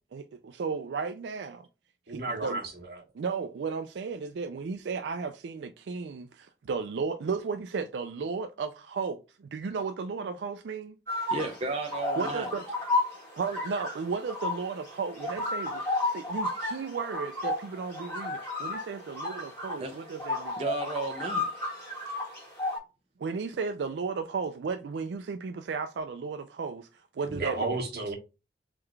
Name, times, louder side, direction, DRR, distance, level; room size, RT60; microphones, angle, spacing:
voice 1, 0.1-1.7 2.1-2.6 3.1-11.0 12.2-12.6 13.4-20.6 23.2-27.8, right 5 dB, 85° right, 0.4 m, -34 dB
voice 2, 2.1-3.0 27.2-28.1, right 2 dB, 55° right, 1.4 m, -33 dB
sound 1, 11.1-22.8, left 2 dB, 15° left, 2.0 m, -33 dB
voice 3, 11.3-12.5 19.8-20.0 20.6-21.7, right 2 dB, 35° right, 0.5 m, -33 dB
3.7 x 3.4 x 3.2 m
head